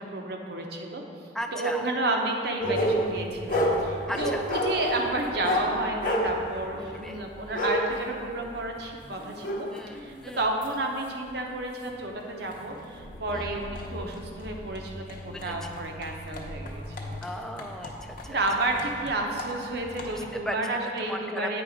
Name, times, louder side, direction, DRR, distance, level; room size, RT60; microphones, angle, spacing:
voice 1, 0.1-1.0 1.5-9.7 10.0-17.2 18.3-21.6, right 2 dB, 65° right, 2 dB, 0.8 m, -31 dB
voice 2, 1.3-1.8 4.1-4.4 6.8-7.2 9.7-10.4 13.3-13.6 15.3-15.7 17.2-18.4 20.0-20.6 21.0-21.5, equal, 5° left, 4 dB, 0.4 m, -37 dB
sound 1, 2.6-10.7 11.3-11.4 12.0-12.1 12.5-20.4, equal, 50° left, 0.8 m, -32 dB
8.7 x 3.8 x 5.0 m, 2.3 s
head